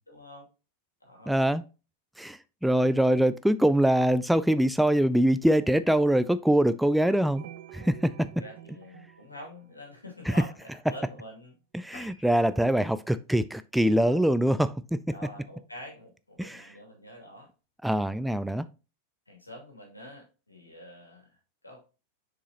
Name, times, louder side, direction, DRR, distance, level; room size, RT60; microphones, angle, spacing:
voice 1, 0.1-0.5 1.0-1.5 8.4-11.5 12.2-12.3 14.0-14.2 15.1-17.5 19.3-21.4 21.6-21.8, equal, 80° left, 2.4 m, -46 dB
voice 2, 1.3-1.6 2.2-7.4 7.7-8.3 10.3-10.4 11.7-15.0 16.4-16.7 17.8-18.7, right 1 dB, ahead, 0.3 m, -24 dB
sound 1, 7.4-10.5, right 12 dB, 45° right, 0.6 m, -49 dB
sound 2, 11.9-14.7 15.2-15.4 15.8-15.9 16.2-16.3 16.5-16.6, left 3 dB, 50° left, 1.7 m, -55 dB
6.8 x 4.8 x 2.9 m
figure-of-eight pair, 90°, 0 cm